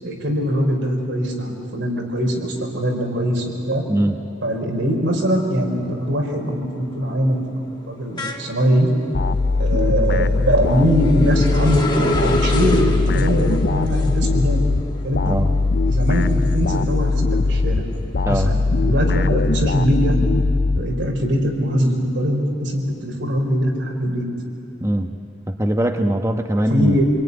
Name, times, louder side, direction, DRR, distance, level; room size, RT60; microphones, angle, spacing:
voice 1, 0.0-3.8 4.4-5.8 6.1-7.4 7.9-8.9 9.6-14.7 15.0-15.3 15.9-17.8 18.3-20.2 20.7-24.2 26.7-27.0, equal, 85° right, 1 dB, 5.0 m, -21 dB
sound 1, 5.3-5.7 6.0-17.3 17.7-19.4, left 1 dB, 25° left, 1.7 m, -30 dB
sound 2, 9.1-21.3, left 3 dB, 55° left, 0.5 m, -20 dB
voice 2, 24.8-25.1 25.5-27.0, right 1 dB, 15° right, 4 dB, 1.0 m, -21 dB
27.0 x 21.5 x 9.9 m, 3.0 s
head